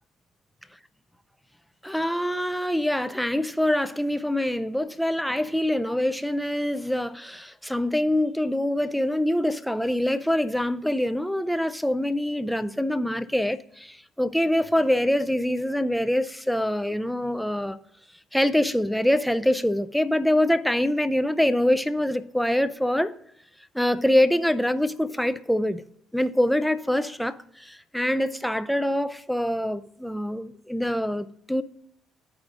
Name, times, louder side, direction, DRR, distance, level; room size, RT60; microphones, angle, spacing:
voice 1, 1.8-17.8 18.3-23.1 23.7-25.8 26.1-27.4 27.6-31.6, left 1 dB, 5° left, 0.5 m, -24 dB
13.5 x 4.9 x 2.5 m
hypercardioid pair, 50°, 0 cm